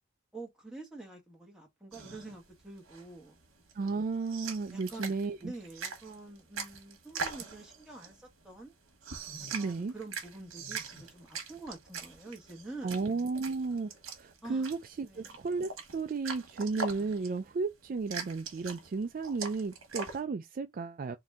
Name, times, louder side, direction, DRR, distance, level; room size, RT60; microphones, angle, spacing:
voice 1, 0.3-3.4 4.7-8.7 9.4-13.0 14.4-14.7 15.0-15.4, right 2 dB, 5° right, 1.5 m, -47 dB
sound 1, 1.9-20.2, right 4 dB, 75° right, 1.3 m, -43 dB
voice 2, 3.7-5.5 9.5-9.9 12.8-21.2, right 4 dB, 40° right, 0.3 m, -34 dB
3.9 x 2.7 x 3.5 m
head